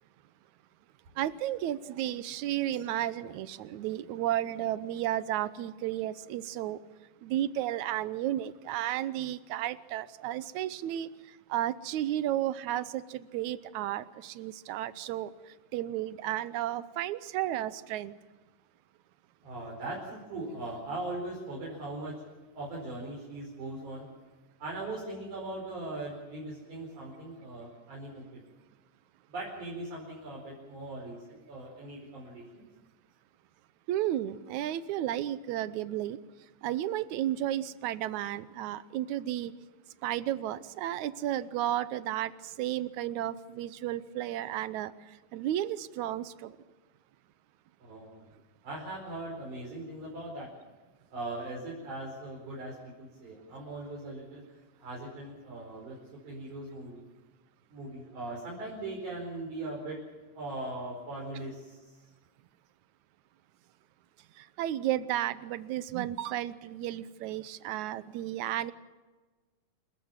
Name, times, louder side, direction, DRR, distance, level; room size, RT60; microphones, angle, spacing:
voice 1, 1.2-6.8 7.2-11.1 11.5-15.3 15.7-18.1 33.9-36.2 36.6-39.5 40.0-42.3 42.6-44.9 45.3-46.5 64.6-68.7, right 13 dB, 75° right, 16 dB, 1.8 m, -33 dB
voice 2, 19.4-22.2 22.5-24.1 24.6-28.4 29.3-32.6 47.8-48.3 48.6-50.5 51.1-56.0 56.2-57.1 57.7-60.0 60.3-62.0, right 2 dB, 55° right, -4 dB, 6.3 m, -40 dB
27.5 x 15.0 x 7.3 m, 1.3 s
omnidirectional pair, 4.1 m